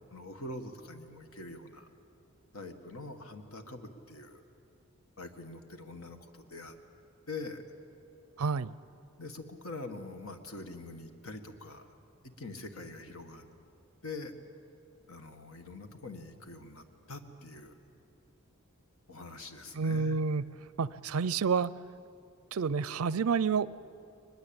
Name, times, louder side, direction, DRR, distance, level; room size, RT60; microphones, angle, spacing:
voice 1, 0.1-1.9 2.5-4.4 5.2-6.8 7.3-7.6 9.2-11.9 12.2-13.5 14.0-14.3 15.1-17.7 19.1-20.2, left 2 dB, 80° left, 7 dB, 1.7 m, -44 dB
voice 2, 8.4-8.7 19.7-20.4 20.8-21.7 22.5-23.7, right 5 dB, 85° right, 19 dB, 0.5 m, -29 dB
22.5 x 20.5 x 8.8 m, 2.6 s
head